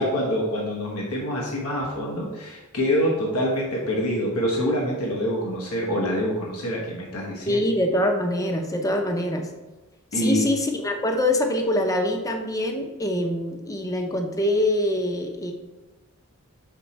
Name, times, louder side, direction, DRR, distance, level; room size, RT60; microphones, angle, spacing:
voice 1, 0.0-7.6 10.1-10.4, equal, 85° left, -3 dB, 1.2 m, -26 dB
voice 2, 7.5-9.5 10.1-15.5, left 1 dB, 15° left, 4 dB, 0.6 m, -24 dB
5.7 x 4.3 x 4.2 m, 1.1 s
head